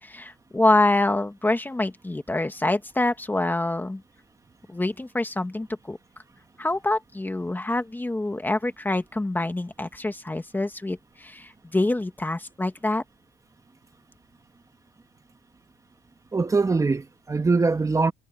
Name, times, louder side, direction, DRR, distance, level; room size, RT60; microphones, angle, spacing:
voice 1, 0.0-4.0 4.7-6.0 6.6-13.0, left 2 dB, 10° left, 1.7 m, -26 dB
voice 2, 16.3-18.1, right 4 dB, 20° right, 1.6 m, -22 dB
cardioid pair, 110°, 17 cm